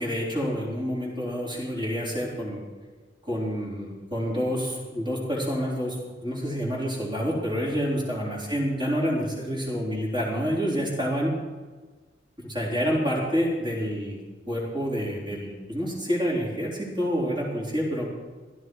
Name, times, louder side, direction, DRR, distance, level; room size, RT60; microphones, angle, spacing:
voice 1, 0.0-2.6 3.2-6.0 6.2-11.3 12.4-14.2 14.5-18.1, equal, 25° right, -4 dB, 4.1 m, -28 dB
15.5 x 12.5 x 4.8 m, 1.3 s
head